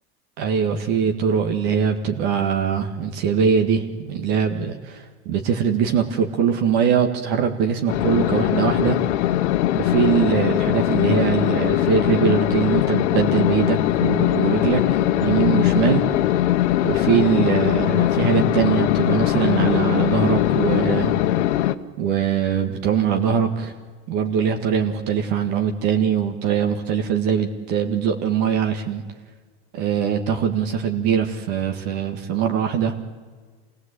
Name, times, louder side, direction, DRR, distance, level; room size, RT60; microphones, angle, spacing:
voice 1, 0.4-9.0 9.7-14.8 15.2-16.0 16.8-21.1 22.0-23.7 24.1-29.0 29.7-32.9, right 7 dB, 70° right, 4 dB, 1.9 m, -22 dB
sound 1, 7.9-21.7, left 13 dB, 90° left, 1.0 m, -20 dB
26.0 x 18.0 x 8.3 m, 1.5 s
supercardioid pair, 115°, 33 cm